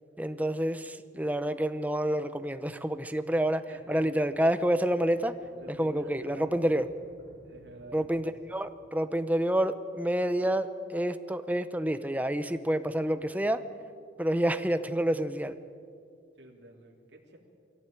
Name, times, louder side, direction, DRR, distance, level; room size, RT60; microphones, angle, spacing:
voice 1, 0.2-5.4 5.8-6.9 7.9-13.6 14.2-15.6, right 1 dB, 10° right, 11 dB, 0.8 m, -28 dB
voice 2, 3.7-4.3 5.6-6.6 7.4-8.1 16.4-17.4, right 1 dB, 75° right, 0 dB, 3.3 m, -49 dB
sound 1, 3.8-9.3, equal, 20° left, 3.8 m, -58 dB
22.5 x 16.5 x 9.1 m, 2.4 s
head